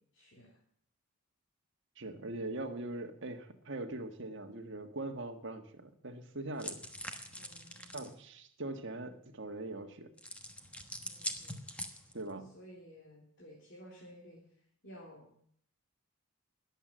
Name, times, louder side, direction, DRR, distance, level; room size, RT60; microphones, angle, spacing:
voice 1, 0.1-0.6 7.4-8.0 11.0-11.6 12.5-14.4 14.8-15.4, equal, 55° left, -3 dB, 3.8 m, -54 dB
voice 2, 2.0-6.8 7.9-10.1 12.1-12.5, right 2 dB, 55° right, 6 dB, 1.5 m, -41 dB
sound 1, 6.6-8.1 10.2-12.3, equal, 5° left, 1.2 m, -43 dB
20.5 x 8.2 x 7.6 m, 0.66 s
head